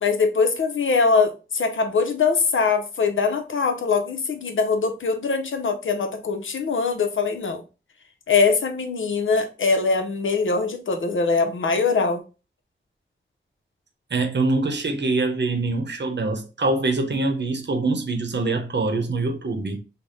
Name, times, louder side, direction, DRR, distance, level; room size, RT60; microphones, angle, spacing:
voice 1, 0.0-7.6 8.3-12.2, left 4 dB, 80° left, 0.7 m, -22 dB
voice 2, 14.1-19.8, right 3 dB, 60° right, 0.8 m, -24 dB
3.4 x 2.2 x 3.9 m
wide cardioid pair, 60°, 20 cm